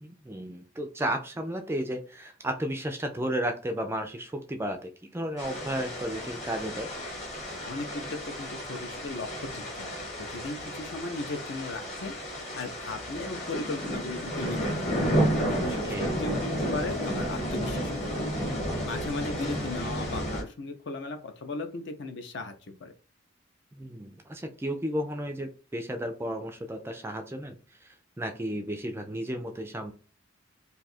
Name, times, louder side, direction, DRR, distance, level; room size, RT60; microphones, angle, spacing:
voice 1, 0.0-6.9 15.8-16.1 23.7-27.9 28.2-29.9, right 1 dB, 10° right, 5 dB, 0.3 m, -33 dB
sound 1, 5.4-20.4, equal, 30° left, 1.0 m, -32 dB
voice 2, 7.6-12.2 12.5-14.9 15.4-15.8 16.2-18.1 18.9-22.9, left 2 dB, 60° left, 7 dB, 0.5 m, -37 dB
2.6 x 2.3 x 4.1 m, 0.36 s
head